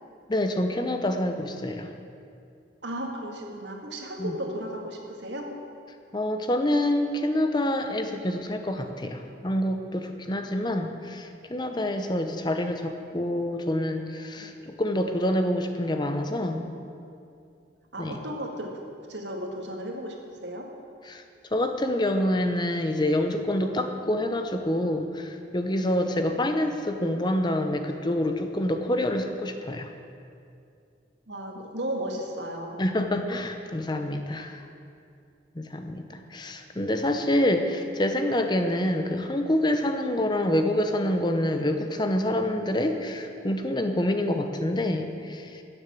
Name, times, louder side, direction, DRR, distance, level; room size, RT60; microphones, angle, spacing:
voice 1, 0.3-1.9 4.2-4.3 6.1-16.7 18.0-18.2 21.1-21.2 21.5-29.9 32.8-34.6 35.6-45.6, left 1 dB, 25° left, 6 dB, 0.7 m, -27 dB
voice 2, 2.8-5.5 10.6-10.7 11.8-11.9 14.4-14.5 17.9-18.8 19.1-20.2 20.4-20.7 26.0-26.3 31.3-32.8 34.4-34.5, right 1 dB, 75° right, 2 dB, 1.8 m, -35 dB
12.5 x 7.2 x 8.4 m, 2.4 s
head